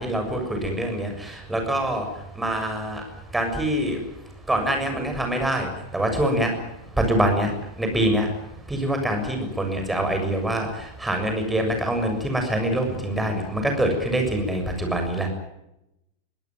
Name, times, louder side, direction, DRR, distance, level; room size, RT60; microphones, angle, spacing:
voice 1, 0.0-2.0 2.4-3.0 3.3-4.0 4.5-5.7 5.9-6.5 7.0-7.5 7.8-8.3 8.7-10.7 11.0-15.3, right 1 dB, 5° right, 4 dB, 7.1 m, -24 dB
23.0 x 18.0 x 9.3 m, 0.87 s
figure-of-eight pair, 90°, 0 cm